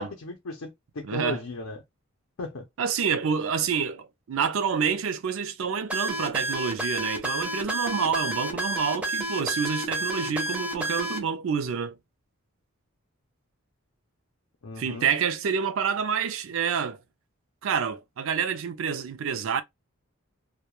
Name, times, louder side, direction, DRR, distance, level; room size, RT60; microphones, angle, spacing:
voice 1, 0.0-1.8 2.4-2.6 14.6-15.0, left 2 dB, 75° left, 0.5 m, -35 dB
voice 2, 1.0-1.4 2.8-12.0 14.8-17.0 17.6-19.6, right 6 dB, 70° right, 0.4 m, -28 dB
sound 1, 5.9-11.2, right 1 dB, 5° right, 0.5 m, -30 dB
2.2 x 2.1 x 2.9 m
head